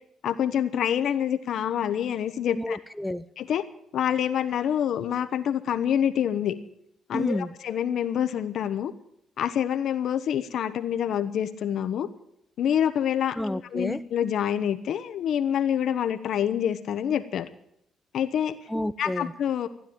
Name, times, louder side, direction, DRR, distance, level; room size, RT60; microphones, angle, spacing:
voice 1, 0.2-2.8 3.4-3.6 3.9-6.5 7.1-8.9 9.4-12.1 12.6-13.4 13.7-17.5 18.1-18.6 19.0-19.7, left 9 dB, 70° left, 12 dB, 1.1 m, -26 dB
voice 2, 2.6-3.3 7.1-7.5 13.4-14.0 18.7-19.3, left 1 dB, 5° left, 12 dB, 0.6 m, -30 dB
15.0 x 9.8 x 9.0 m, 0.74 s
cardioid pair, 90°, 0 cm